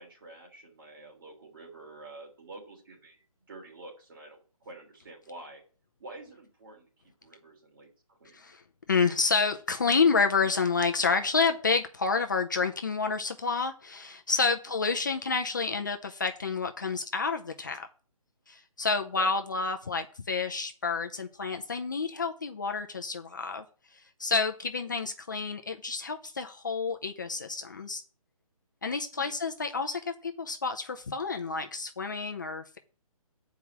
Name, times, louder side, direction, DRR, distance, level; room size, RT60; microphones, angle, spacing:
voice 1, 0.0-5.6 6.0-6.9 7.2-8.4 14.8-14.9 19.2-19.3 24.9-25.0 29.2-29.3, right 2 dB, 35° right, 1 dB, 3.1 m, -48 dB
voice 2, 8.9-17.9 18.5-23.6 23.9-28.0 28.8-32.8, left 4 dB, 30° left, 5 dB, 0.6 m, -29 dB
9.0 x 4.8 x 7.2 m, 0.39 s
hypercardioid pair, 175°, 19 cm